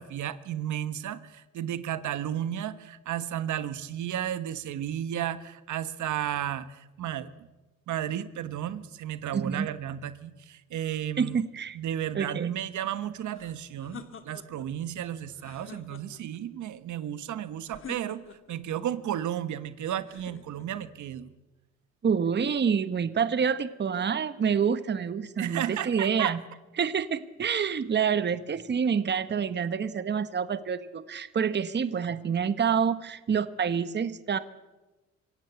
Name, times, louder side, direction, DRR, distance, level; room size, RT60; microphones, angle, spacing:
voice 1, 0.0-7.3 7.9-11.4 11.7-18.2 18.5-21.3 25.4-26.4, right 11 dB, 75° right, 13 dB, 1.3 m, -33 dB
voice 2, 9.3-9.7 11.2-11.8 12.1-12.6 22.0-26.4 26.8-34.4, right 7 dB, 35° right, 14 dB, 1.1 m, -27 dB
sound 1, 13.3-14.7 15.3-16.4 17.7-18.6 20.1-20.9, left 6 dB, 45° left, 2.1 m, -47 dB
25.5 x 16.5 x 8.1 m, 1.1 s
cardioid pair, 90°, 30 cm